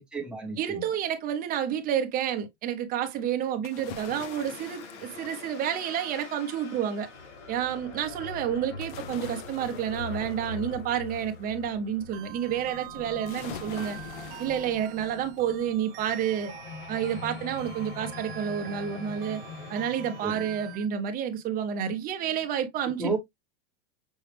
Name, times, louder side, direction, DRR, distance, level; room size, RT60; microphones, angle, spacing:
voice 1, 0.0-0.8 20.2-20.5 23.0-23.2, right 3 dB, 5° right, 1.1 m, -32 dB
voice 2, 0.6-7.1 7.5-14.0 14.4-16.5 16.9-19.4 19.7-23.2, right 9 dB, 25° right, 0.9 m, -30 dB
sound 1, 3.6-6.5 8.8-11.4 13.3-15.5 16.0-16.1, left 10 dB, 45° left, 0.7 m, -45 dB
sound 2, 3.8-20.8, left 4 dB, 80° left, 3.2 m, -43 dB
sound 3, 12.1-20.9, right 14 dB, 50° right, 0.8 m, -46 dB
6.3 x 2.3 x 3.4 m
supercardioid pair, 160°, 35 cm